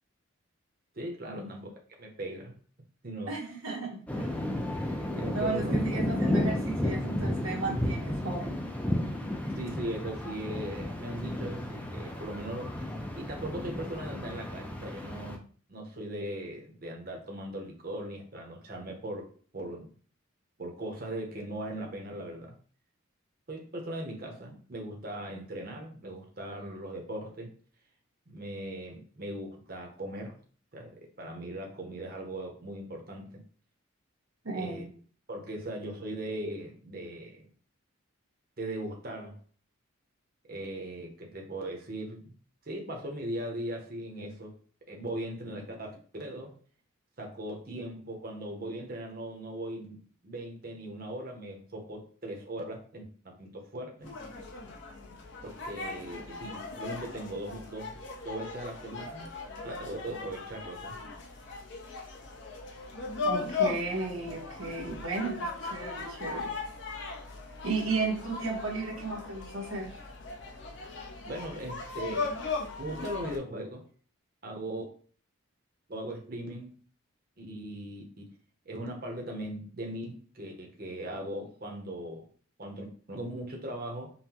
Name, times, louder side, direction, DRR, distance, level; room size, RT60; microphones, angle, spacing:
voice 1, 0.9-1.7 2.0-2.6 3.0-3.3 4.2-4.4 4.7-5.7 9.4-19.9 20.6-22.5 23.5-27.5 28.3-30.4 30.7-33.4 34.5-34.9 35.3-37.5 38.6-39.4 40.5-42.3 42.6-44.5 44.9-46.6 47.2-54.1 55.4-58.0 58.2-59.3 59.6-61.0 71.2-72.3 72.8-73.8 74.4-74.8 75.9-76.7 77.4-78.2 78.6-82.3 82.6-84.1, right 1 dB, 45° right, 1 dB, 0.8 m, -39 dB
voice 2, 3.3-4.3 5.3-8.6 34.4-34.9 63.2-66.5 67.6-70.0, right 3 dB, 85° right, -1 dB, 1.1 m, -34 dB
sound 1, 4.1-15.4, left 1 dB, 5° left, 0.4 m, -33 dB
sound 2, 54.0-73.4, left 4 dB, 60° left, 0.7 m, -38 dB
5.4 x 2.1 x 2.9 m, 0.43 s
head